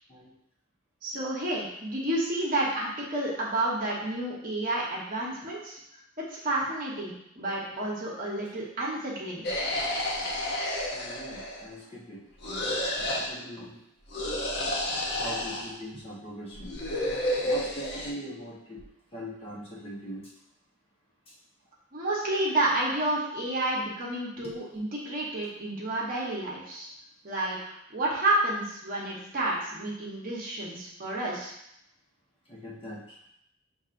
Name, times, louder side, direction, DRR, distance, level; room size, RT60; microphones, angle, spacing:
voice 1, 1.0-5.8 6.2-9.4 21.9-26.9 27.2-31.5, right 1 dB, 45° right, -5 dB, 1.0 m, -30 dB
sound 1, 9.4-11.7 12.4-13.3 14.1-15.7 16.6-18.1, left 1 dB, 55° left, 0.8 m, -30 dB
voice 2, 10.9-13.8 15.1-16.7 17.4-18.9 19.1-20.3 21.3-21.4 24.4-24.5 32.5-33.2, equal, 30° left, -6 dB, 1.1 m, -42 dB
7.1 x 2.7 x 2.5 m, 0.78 s
head